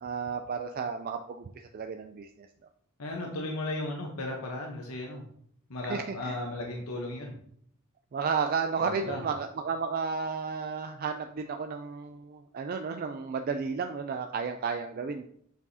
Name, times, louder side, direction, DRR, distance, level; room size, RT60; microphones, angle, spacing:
voice 1, 0.0-2.5 5.9-6.4 8.1-15.2, right 5 dB, 45° right, 6 dB, 0.3 m, -33 dB
voice 2, 3.0-5.2 5.7-7.4 8.8-9.2, left 2 dB, 85° left, 0 dB, 0.9 m, -35 dB
7.9 x 4.7 x 2.7 m, 0.68 s
head